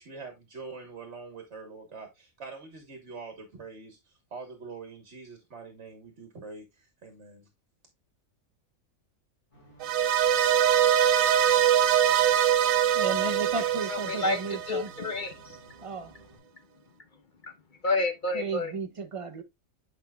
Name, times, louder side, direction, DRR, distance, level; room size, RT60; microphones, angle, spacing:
voice 1, 0.0-4.0 4.3-7.5, right 4 dB, 55° right, 1.6 m, -44 dB
sound 1, 9.5-16.4, right 1 dB, 25° left, 4.4 m, -55 dB
sound 2, 9.8-15.1, right 10 dB, 70° right, 1.0 m, -23 dB
voice 2, 12.9-14.9 15.8-16.1 18.3-19.4, right 4 dB, 35° right, 0.6 m, -33 dB
voice 3, 13.9-14.4 14.7-15.6 17.4-17.5 17.8-18.7, left 3 dB, 45° left, 0.7 m, -29 dB
9.0 x 5.0 x 2.2 m
omnidirectional pair, 1.4 m